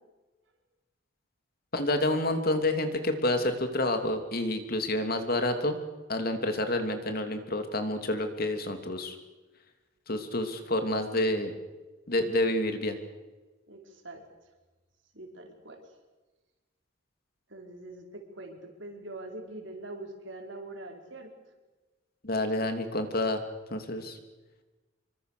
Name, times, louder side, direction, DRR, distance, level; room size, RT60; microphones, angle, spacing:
voice 1, 1.7-5.8 6.1-9.1 10.1-11.5 12.1-13.0 22.2-23.4 23.7-24.2, left 1 dB, 50° left, 7 dB, 2.9 m, -28 dB
voice 2, 13.7-14.2 15.1-15.8 17.5-21.3, right 2 dB, 70° right, 2 dB, 5.1 m, -43 dB
27.0 x 24.0 x 6.8 m, 1.2 s
head